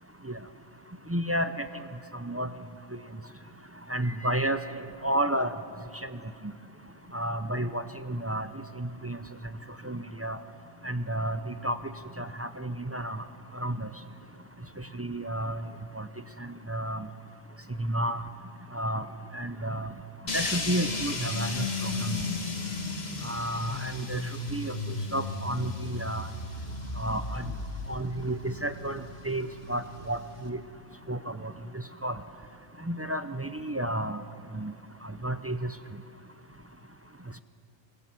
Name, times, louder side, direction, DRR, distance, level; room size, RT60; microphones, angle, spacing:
voice 1, 1.1-1.7 2.2-2.5 3.9-5.5 6.0-6.1 6.4-6.5 7.1-8.5 8.8-9.2 9.8-10.4 10.8-11.8 12.2-13.2 13.5-13.9 14.9-15.6 16.0-16.1 16.7-17.1 17.8-18.2 18.7-19.0 19.3-19.9 20.3-22.3 23.2-26.3 27.0-27.4 27.9-30.6 31.1-31.5 32.0-32.2 32.9-34.2 34.5-34.7 35.2-35.7, right 1 dB, 20° right, 10 dB, 0.3 m, -31 dB
sound 1, 20.3-30.5, left 3 dB, 55° left, 2.0 m, -35 dB
26.0 x 20.5 x 7.5 m, 2.5 s
omnidirectional pair, 1.3 m